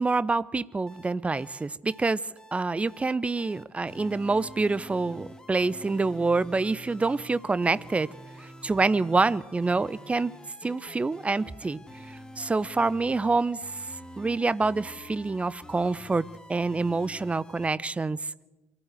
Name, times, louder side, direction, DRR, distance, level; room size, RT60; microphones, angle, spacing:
voice 1, 0.0-2.2 2.5-8.1 8.4-10.3 10.6-11.8 12.1-13.6 14.2-18.2, right 3 dB, 15° right, 19 dB, 0.6 m, -26 dB
sound 1, 0.9-17.7, left 1 dB, 10° left, 2.1 m, -47 dB
23.5 x 15.0 x 8.0 m, 1.1 s
figure-of-eight pair, 55°, 8 cm